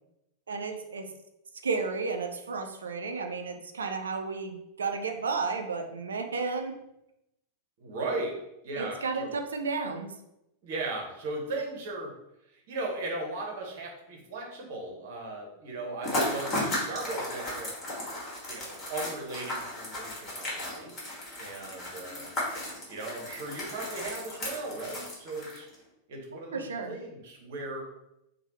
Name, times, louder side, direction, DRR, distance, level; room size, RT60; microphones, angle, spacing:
voice 1, 0.5-1.1 1.6-6.7 8.7-10.1 26.5-27.0, right 4 dB, 70° right, 6 dB, 0.3 m, -32 dB
voice 2, 7.8-8.4 8.6-9.4 10.6-12.1 12.5-17.7 18.4-21.0 21.4-22.2 22.9-25.7 26.1-27.8, right 2 dB, 50° right, 0 dB, 0.8 m, -37 dB
sound 1, 16.0-25.8, left 1 dB, 25° left, 1.3 m, -35 dB
3.0 x 2.1 x 2.9 m, 0.86 s
figure-of-eight pair, 90°, 0 cm